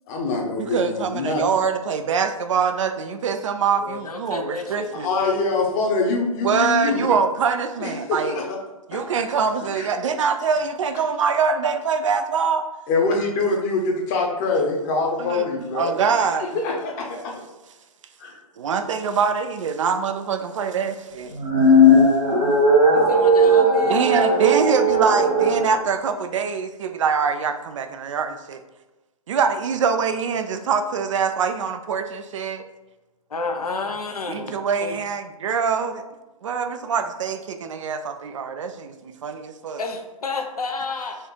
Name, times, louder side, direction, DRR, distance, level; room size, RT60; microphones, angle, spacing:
voice 1, 0.1-1.4 4.9-7.2 7.8-8.6 8.9-9.0 9.7-9.9 12.9-16.2 16.5-17.3 18.2-18.4, left 3 dB, 30° left, 1 dB, 0.9 m, -24 dB
voice 2, 0.6-5.1 6.4-8.4 8.9-12.6 15.2-15.5 15.7-16.5 18.6-21.3 23.8-28.6 29.3-32.6 34.3-36.0 36.4-39.8, right 6 dB, 55° right, 7 dB, 0.4 m, -24 dB
voice 3, 3.8-5.2 22.9-24.0 33.3-34.5 34.8-35.0 39.8-41.2, left 3 dB, 80° left, 4 dB, 0.7 m, -30 dB
sound 1, 21.3-25.7, equal, 80° right, 1.5 m, -17 dB
4.3 x 2.4 x 4.5 m, 1.1 s
figure-of-eight pair, 125°, 19 cm